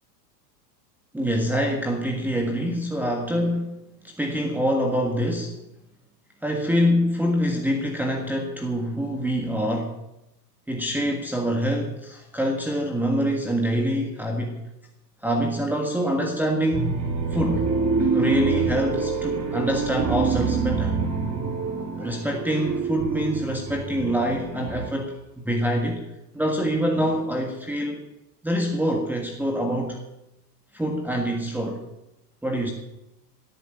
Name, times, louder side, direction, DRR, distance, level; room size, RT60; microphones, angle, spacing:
voice 1, 1.1-3.7 4.0-5.5 6.4-10.0 10.7-14.6 15.2-17.0 17.3-17.7 18.1-21.0 22.0-25.1 25.4-26.0 26.3-28.0 28.4-30.0 30.7-31.8 32.4-32.7, equal, 5° right, 1 dB, 1.6 m, -25 dB
sound 1, 16.7-24.9, right 5 dB, 30° right, 2.8 m, -26 dB
16.0 x 8.9 x 6.8 m, 0.90 s
supercardioid pair, 125°, 49 cm